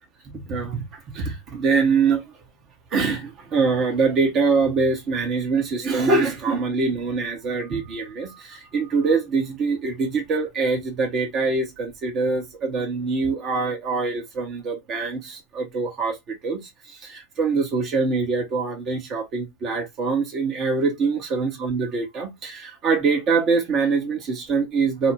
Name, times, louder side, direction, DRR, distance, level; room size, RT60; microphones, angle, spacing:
voice 1, 0.3-0.8 1.1-2.2 2.9-16.6 16.9-25.1, right 4 dB, 30° right, 0.7 m, -24 dB
2.4 x 2.0 x 2.9 m
figure-of-eight pair, 90°, 0 cm